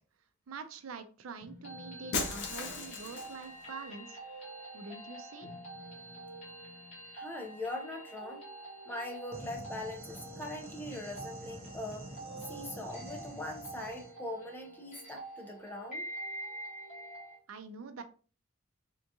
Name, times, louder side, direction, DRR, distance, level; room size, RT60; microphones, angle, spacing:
voice 1, 0.5-5.5 17.5-18.0, right 4 dB, 75° right, 9 dB, 0.4 m, -46 dB
sound 1, 1.4-17.4, right 1 dB, 35° left, 1.3 m, -46 dB
Shatter, 2.1-3.5, left 4 dB, 55° left, 0.5 m, -36 dB
voice 2, 7.1-8.4 8.9-12.1 12.4-16.0, left 2 dB, 10° left, 1 dB, 0.6 m, -41 dB
sound 2, 9.3-14.1, right 1 dB, 30° right, 0.7 m, -48 dB
3.6 x 2.4 x 2.7 m, 0.38 s
head